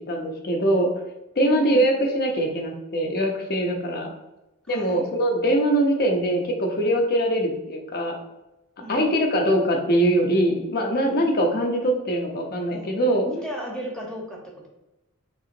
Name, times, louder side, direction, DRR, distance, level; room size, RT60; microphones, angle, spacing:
voice 1, 0.1-0.9 1.4-4.1 4.7-8.2 8.9-13.3, right 1 dB, 45° left, 2 dB, 0.7 m, -22 dB
voice 2, 1.4-1.9 4.7-5.1 8.8-9.1 11.0-11.3 12.7-13.0 13.2-14.7, equal, 5° left, -2 dB, 0.9 m, -36 dB
5.6 x 2.9 x 2.5 m, 0.96 s
head